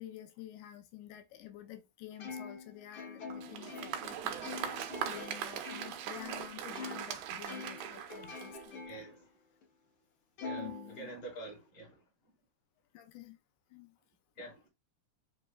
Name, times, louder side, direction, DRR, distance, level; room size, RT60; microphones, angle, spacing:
voice 1, 0.0-9.0 10.5-11.1 12.9-13.4 13.7-13.9, left 12 dB, 85° left, 2.1 m, -50 dB
Plucked string instrument, 2.2-7.1 7.5-9.2 9.6-9.7 10.4-11.5, left 4 dB, 60° left, 1.5 m, -45 dB
Applause, 3.3-8.9, right 9 dB, 85° right, 2.1 m, -40 dB
voice 2, 8.9-9.3 10.4-12.0 14.4-14.7, right 2 dB, 30° left, 1.9 m, -47 dB
5.0 x 3.2 x 2.2 m
omnidirectional pair, 3.5 m